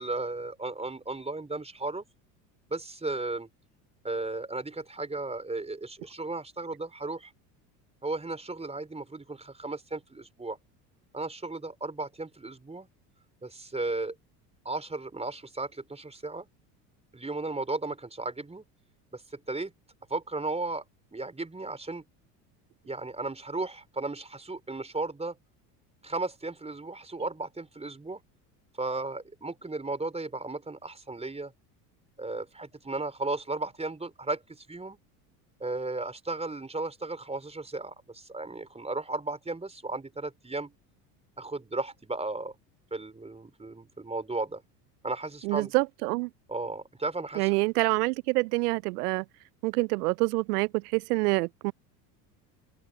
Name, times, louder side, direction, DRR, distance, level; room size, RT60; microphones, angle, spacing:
voice 1, 0.0-2.0 2.7-3.5 4.0-7.3 8.0-10.6 11.1-12.9 13.4-14.1 14.6-16.5 17.1-18.6 19.1-19.7 20.1-20.8 21.1-22.0 22.8-25.4 26.0-28.2 28.8-31.5 32.2-35.0 35.6-40.7 41.4-42.5 42.9-44.6 45.0-45.7 46.5-47.5, right 2 dB, 15° right, 4.7 m, -35 dB
voice 2, 45.4-46.3 47.4-49.2 49.6-51.7, right 24 dB, 70° right, 0.7 m, -26 dB
open air
hypercardioid pair, 75°, 47 cm